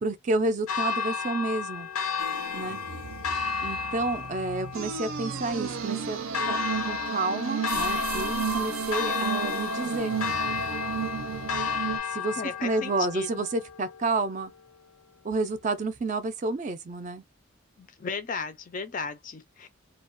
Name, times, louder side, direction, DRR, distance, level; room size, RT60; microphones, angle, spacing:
voice 1, 0.0-1.9 2.5-2.8 3.6-6.2 6.5-6.6 6.9-10.1 12.1-14.5 15.2-17.2, right 2 dB, 35° right, 0.3 m, -30 dB
Church bell, 0.7-14.7, left 6 dB, 90° left, 0.6 m, -33 dB
sound 1, 2.2-12.0, right 6 dB, 80° right, 0.6 m, -33 dB
voice 2, 12.4-13.4 17.8-19.7, left 5 dB, 40° left, 0.4 m, -35 dB
2.3 x 2.2 x 2.5 m
head